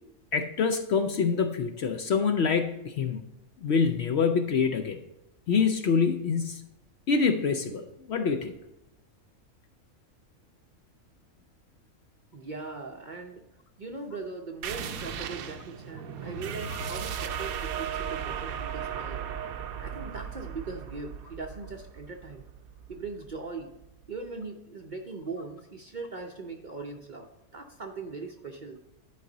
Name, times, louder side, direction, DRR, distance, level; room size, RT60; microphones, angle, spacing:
voice 1, 0.3-3.2 3.6-5.0 5.5-6.6 7.1-8.5, left 5 dB, 60° left, 6 dB, 0.7 m, -26 dB
voice 2, 12.3-13.4 13.8-19.3 19.8-22.4 22.9-23.7 24.1-28.8, right 3 dB, 45° right, 3 dB, 0.6 m, -40 dB
sound 1, 14.6-23.8, right 8 dB, 85° right, 1.1 m, -36 dB
11.0 x 4.9 x 3.9 m, 0.93 s
omnidirectional pair, 1.5 m